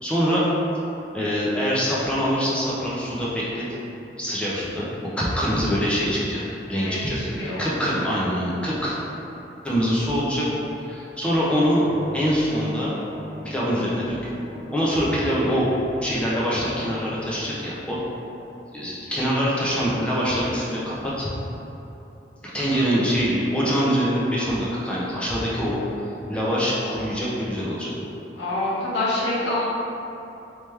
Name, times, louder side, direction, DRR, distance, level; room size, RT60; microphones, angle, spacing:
voice 1, 0.0-0.5 1.1-3.7 4.2-6.4 6.7-9.0 9.6-10.5 10.8-11.8 12.1-12.9 13.4-14.2 14.7-15.7 16.0-18.0 18.7-21.3 22.4-25.8 26.3-27.9, equal, 5° left, -7 dB, 0.6 m, -24 dB
voice 2, 6.8-7.6 22.7-22.8 28.4-29.7, left 2 dB, 80° left, -8 dB, 1.1 m, -26 dB
sound 1, 11.6-17.6, equal, 70° right, 0.7 m, -41 dB
3.4 x 3.0 x 3.2 m, 3.0 s
head